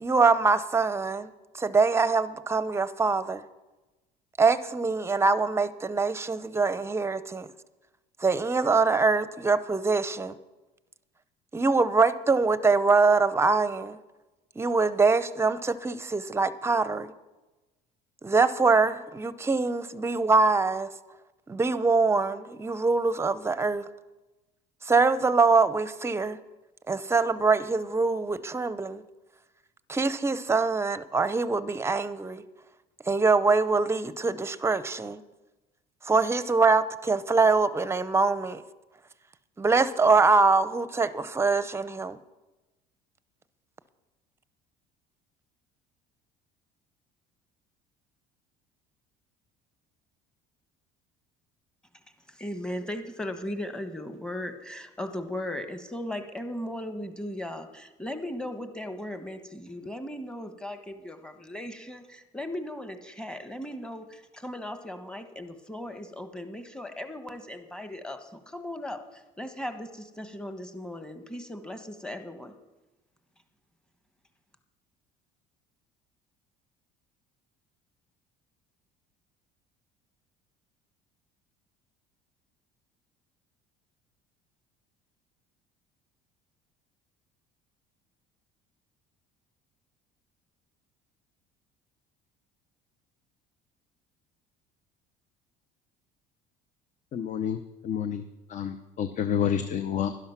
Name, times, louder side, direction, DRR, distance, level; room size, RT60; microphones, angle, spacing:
voice 1, 0.0-3.4 4.4-7.5 8.2-10.3 11.5-14.0 14.6-17.1 18.2-20.9 21.5-23.8 24.9-26.4 26.9-29.0 29.9-32.4 33.1-35.2 36.1-38.6 39.6-42.2, right 4 dB, 15° right, 0.7 m, -24 dB
voice 2, 52.3-72.6, left 1 dB, 5° left, 1.3 m, -37 dB
voice 3, 97.1-100.1, left 8 dB, 50° left, 0.7 m, -29 dB
11.5 x 11.5 x 5.9 m
supercardioid pair, 100°, 17 cm